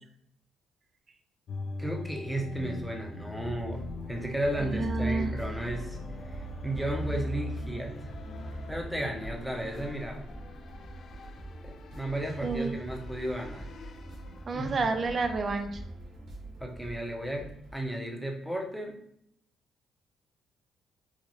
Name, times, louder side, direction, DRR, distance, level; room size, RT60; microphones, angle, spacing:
sound 1, 1.5-15.6, left 1 dB, 60° left, 0.4 m, -40 dB
voice 1, 1.8-6.0 6.2-8.1 8.7-10.2 11.6-13.7 14.5-14.8 16.6-19.0, right 1 dB, ahead, 1 dB, 0.7 m, -34 dB
sound 2, 3.4-17.8, right 1 dB, 70° right, 1.3 m, -44 dB
voice 2, 4.6-5.3 12.4-12.7 14.5-15.8, right 4 dB, 45° right, 6 dB, 0.4 m, -30 dB
3.9 x 2.4 x 3.0 m, 0.71 s
cardioid pair, 90°, 0 cm